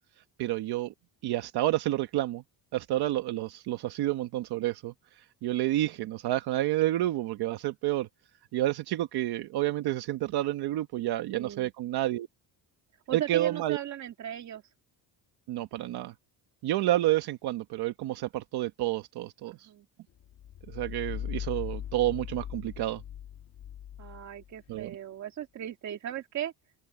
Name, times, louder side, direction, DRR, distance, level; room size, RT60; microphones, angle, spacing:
voice 1, 0.4-0.9 1.2-2.4 2.7-8.1 8.5-12.3 13.1-13.8 15.5-16.1 16.6-19.7 20.7-23.0 24.7-25.0, right 15 dB, 65° right, 1.2 m, -29 dB
voice 2, 11.3-11.7 13.1-14.6 19.5-19.9 24.0-26.5, right 11 dB, 45° right, 2.2 m, -37 dB
sound 1, 20.2-24.9, left 10 dB, 50° left, 2.6 m, -40 dB
open air
cardioid pair, 175°, 41 cm